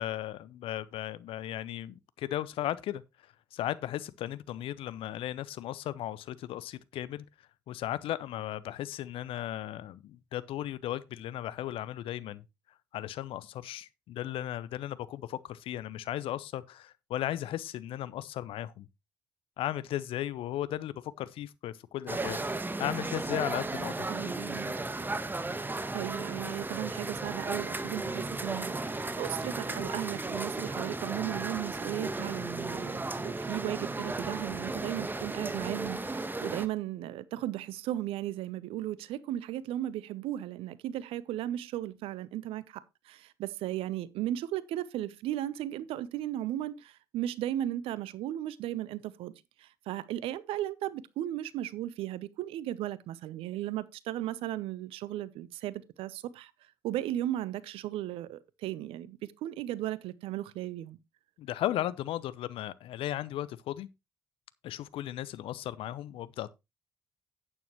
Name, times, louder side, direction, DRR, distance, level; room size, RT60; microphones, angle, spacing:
voice 1, 0.0-3.0 3.5-7.2 7.7-12.4 12.9-18.9 19.6-24.1 61.4-63.9 64.6-66.5, left 13 dB, 70° left, 0.8 m, -36 dB
sound 1, 22.1-36.7, right 2 dB, 20° right, 1.3 m, -35 dB
voice 2, 24.1-24.7 25.9-42.8 43.1-49.3 49.6-56.5 56.8-61.0, right 13 dB, 70° right, 0.8 m, -36 dB
11.0 x 8.9 x 3.1 m
hypercardioid pair, 45°, 10 cm